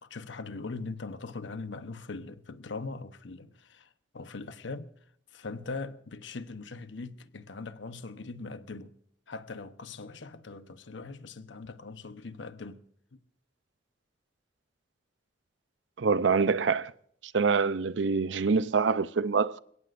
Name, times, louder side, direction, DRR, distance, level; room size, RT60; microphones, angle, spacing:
voice 1, 0.0-4.9 5.3-8.9 9.3-12.8 13.1-13.2, left 3 dB, 85° left, 1.0 m, -41 dB
voice 2, 16.0-16.9 17.2-19.6, right 5 dB, 80° right, 0.6 m, -25 dB
29.5 x 17.0 x 2.6 m
head